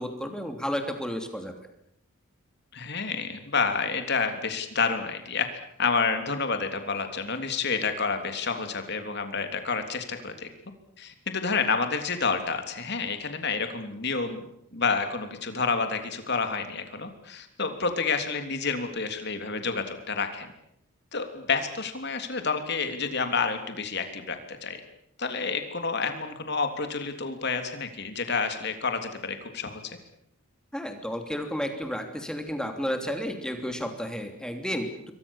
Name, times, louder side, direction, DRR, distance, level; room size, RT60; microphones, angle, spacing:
voice 1, 0.0-1.5 30.7-35.1, equal, 5° left, 5 dB, 3.1 m, -32 dB
voice 2, 2.7-10.5 11.0-14.4 14.7-20.5 21.1-24.8 25.2-30.0, left 4 dB, 50° left, 6 dB, 3.3 m, -29 dB
27.5 x 23.0 x 7.3 m, 0.76 s
head